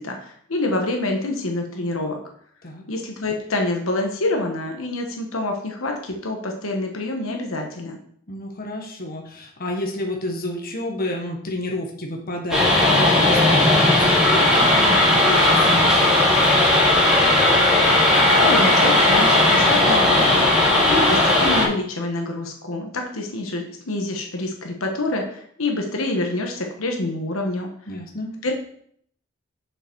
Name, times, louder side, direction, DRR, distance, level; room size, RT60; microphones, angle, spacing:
voice 1, 0.0-2.2 2.9-8.0 18.2-20.5 20.9-27.7 28.4-28.5, left 2 dB, 80° left, 2 dB, 1.3 m, -26 dB
voice 2, 8.3-16.6 20.7-21.0 27.9-28.3, left 1 dB, 45° left, 1 dB, 1.4 m, -31 dB
sound 1, 12.5-21.7, left 1 dB, 5° right, 2.5 m, -16 dB
6.9 x 5.9 x 4.6 m, 0.64 s
head